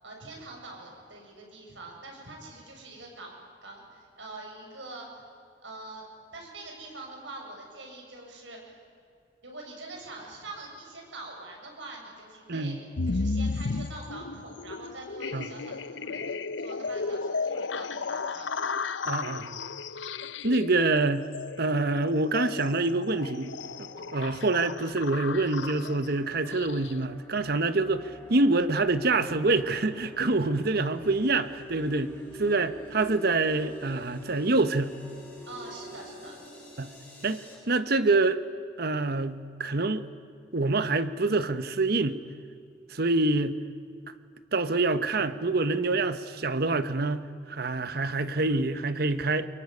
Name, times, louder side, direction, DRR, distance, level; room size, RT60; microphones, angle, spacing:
voice 1, 0.0-5.2 5.6-6.0 6.3-8.8 9.4-12.8 13.0-18.5 35.5-36.4, right 2 dB, 80° right, 0 dB, 7.3 m, -44 dB
voice 2, 12.5-12.8 15.3-15.5 19.1-19.6 20.4-21.3 21.6-23.5 23.8-32.1 32.4-34.9 36.8-36.9 37.2-37.4 37.7-38.4 38.8-40.1 40.5-42.2 42.9-43.6 44.5-49.5, right 3 dB, 55° right, 12 dB, 1.1 m, -26 dB
sound 1, 13.0-27.0, left 4 dB, 75° left, 0.8 m, -34 dB
sound 2, 22.6-37.6, left 1 dB, 10° left, 7.5 m, -47 dB
24.0 x 22.5 x 9.7 m, 2.4 s
head